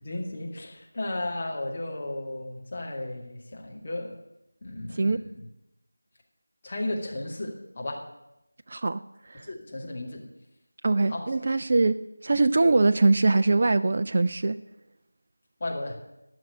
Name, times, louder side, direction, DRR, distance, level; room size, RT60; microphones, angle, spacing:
voice 1, 0.0-4.2 4.6-5.4 6.6-8.1 9.4-10.2 11.1-11.3 15.6-16.0, left 1 dB, 30° left, -1 dB, 2.2 m, -34 dB
voice 2, 4.9-5.2 8.7-9.0 9.3-9.5 10.8-14.6, right 3 dB, 35° right, 10 dB, 0.4 m, -22 dB
13.5 x 6.1 x 9.9 m, 0.90 s
figure-of-eight pair, 170°, 0 cm